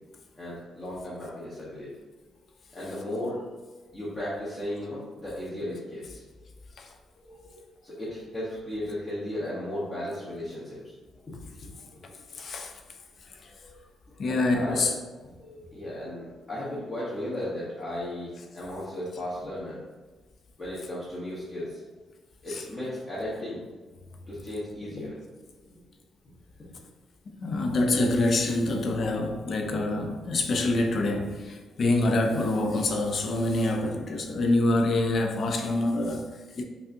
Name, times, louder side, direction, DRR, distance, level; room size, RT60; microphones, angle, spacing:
voice 1, 0.4-1.9 2.7-3.6 3.9-6.2 7.2-10.9 11.3-12.1 13.6-13.8 14.3-14.9 15.4-19.8 20.6-21.8 22.4-23.7 24.2-25.2 25.6-25.7 26.7-26.8 31.7-31.8 34.2-34.4, left 1 dB, 20° left, -9 dB, 0.8 m, -36 dB
voice 2, 12.3-12.7 13.4-13.5 14.2-14.9 22.5-22.6 24.9-25.1 27.3-36.6, left 2 dB, 40° left, 4 dB, 0.4 m, -26 dB
5.2 x 2.5 x 2.5 m, 1.3 s
cardioid pair, 175°, 0 cm